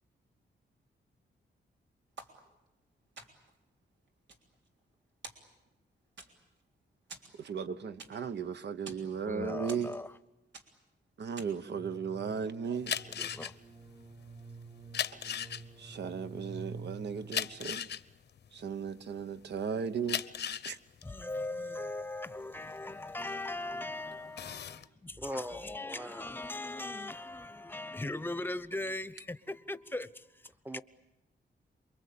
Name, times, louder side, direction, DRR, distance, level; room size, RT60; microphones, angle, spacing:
sound 1, 2.2-2.8 3.2-3.6 4.1-5.0 5.2-5.8 6.2-6.6 7.1-8.4 8.7-9.1 9.7-10.2 10.5-10.9 11.4-11.7, right 3 dB, 90° right, 3.6 m, -50 dB
voice 1, 7.3-9.9 11.2-12.9 15.1-15.2 15.8-17.9 18.5-20.2 20.6-20.8, right 6 dB, 70° right, 1.1 m, -36 dB
voice 2, 9.3-10.2 13.1-13.6 21.0-30.8, left 2 dB, 10° left, 0.9 m, -39 dB
sound 2, 11.8-17.7, right 3 dB, 25° right, 1.1 m, -49 dB
sound 3, 12.8-19.4 19.9-23.7 24.1-24.9, left 9 dB, 70° left, 0.9 m, -37 dB
voice 3, 25.2-26.2 30.6-30.8, equal, 10° right, 1.0 m, -40 dB
28.0 x 23.0 x 8.6 m
wide cardioid pair, 115°, 18 cm